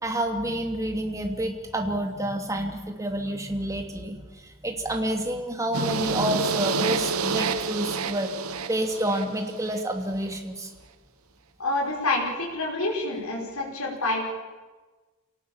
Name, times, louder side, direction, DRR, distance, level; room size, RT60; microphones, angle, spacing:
voice 1, 0.0-8.4 8.7-10.7, right 1 dB, 15° right, 3 dB, 2.7 m, -29 dB
sound 1, 5.7-9.8, right 4 dB, 75° right, 1.1 m, -28 dB
voice 2, 11.6-14.2, left 2 dB, 75° left, -3 dB, 5.4 m, -27 dB
28.0 x 18.0 x 7.3 m, 1.3 s
head